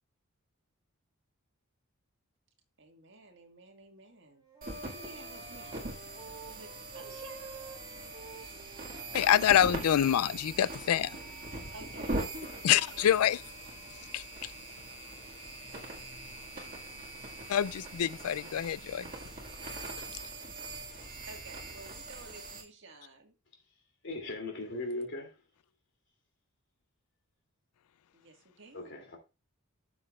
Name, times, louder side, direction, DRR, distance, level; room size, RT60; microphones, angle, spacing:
voice 1, 2.8-6.0 6.5-7.6 11.5-13.1 21.3-23.3 28.1-28.9, right 2 dB, 55° right, 1.8 m, -52 dB
Wind instrument woodwind instrument, 4.1-10.6, right 5 dB, 20° right, 2.2 m, -52 dB
sound 1, 4.6-22.6, right 2 dB, 40° right, 2.0 m, -42 dB
voice 2, 9.1-11.2 12.6-13.4 14.1-14.5 17.5-19.1, left 10 dB, 90° left, 0.4 m, -26 dB
voice 3, 24.0-25.3 28.7-29.2, left 2 dB, 55° left, 2.8 m, -38 dB
13.0 x 6.7 x 2.4 m
head